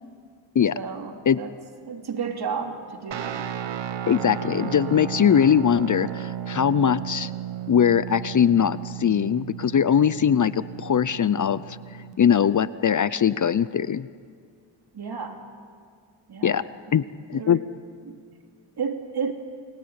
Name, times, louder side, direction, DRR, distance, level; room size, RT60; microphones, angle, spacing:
voice 1, 0.7-1.5 1.9-3.5 14.9-15.4 16.3-16.6 16.9-17.0 17.3-17.6 18.1-18.2 18.8-19.3, right 6 dB, 55° right, 4 dB, 3.1 m, -32 dB
Guitar, 3.1-12.2, right 10 dB, 75° right, 1.4 m, -34 dB
voice 2, 4.1-7.3 7.7-14.1 16.4-16.6 16.9-17.0 17.3-17.6, left 8 dB, 45° left, 16 dB, 0.6 m, -21 dB
29.0 x 21.0 x 9.6 m, 2.1 s
wide cardioid pair, 130°, 44 cm